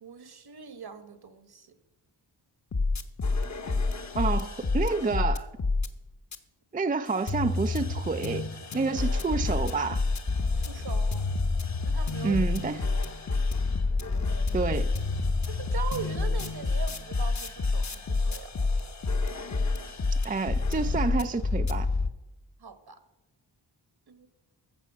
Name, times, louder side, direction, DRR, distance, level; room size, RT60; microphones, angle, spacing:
voice 1, 0.0-1.8 10.5-11.2 11.8-12.4 15.5-18.5 22.6-23.0 24.1-24.3, right 6 dB, 55° right, 1.2 m, -41 dB
sound 1, 2.7-5.9 6.3-6.4 7.1-22.1, left 3 dB, 35° left, 1.0 m, -28 dB
voice 2, 4.2-5.5 6.7-8.5 8.7-10.1 12.2-12.8 14.5-14.9 20.2-21.9, right 4 dB, 20° right, 0.4 m, -29 dB
14.5 x 5.6 x 7.2 m
wide cardioid pair, 80°, 47 cm